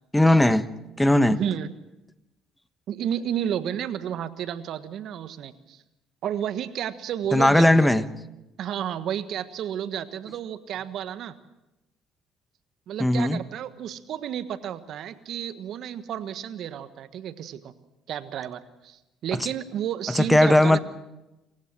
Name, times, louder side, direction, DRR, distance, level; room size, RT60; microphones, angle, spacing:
voice 1, 0.1-0.6 1.0-1.4 7.3-8.0 13.0-13.4 20.1-20.8, left 1 dB, 5° left, 13 dB, 1.3 m, -18 dB
voice 2, 1.0-1.7 2.9-5.8 6.2-8.1 8.6-11.3 12.9-17.7 18.1-20.8, right 9 dB, 65° right, 12 dB, 1.4 m, -32 dB
27.0 x 15.5 x 7.5 m, 0.97 s
supercardioid pair, 75°, 0 cm